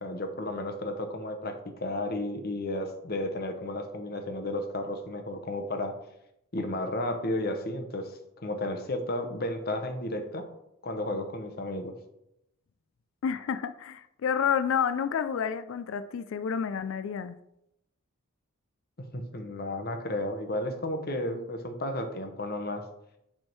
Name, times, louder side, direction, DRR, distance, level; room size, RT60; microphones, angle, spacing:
voice 1, 0.0-5.9 6.5-10.4 10.8-11.9 19.0-22.8, left 1 dB, 45° left, 0.9 m, -33 dB
voice 2, 13.2-17.4, left 7 dB, 65° left, 0.3 m, -29 dB
7.9 x 3.6 x 4.5 m
head